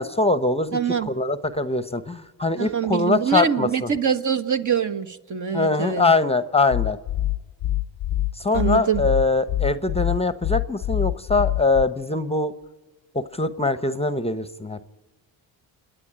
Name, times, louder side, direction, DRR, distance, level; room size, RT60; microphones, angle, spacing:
voice 1, 0.0-0.8 1.1-3.9 5.5-7.0 8.4-12.5 13.1-14.8, left 3 dB, 15° left, 14 dB, 0.9 m, -22 dB
voice 2, 0.7-1.1 2.6-6.0 8.5-9.0, right 7 dB, 40° right, 9 dB, 1.3 m, -24 dB
sound 1, 6.7-11.8, left 14 dB, 55° left, 0.6 m, -25 dB
28.5 x 10.0 x 10.0 m, 1.2 s
supercardioid pair, 70°, 47 cm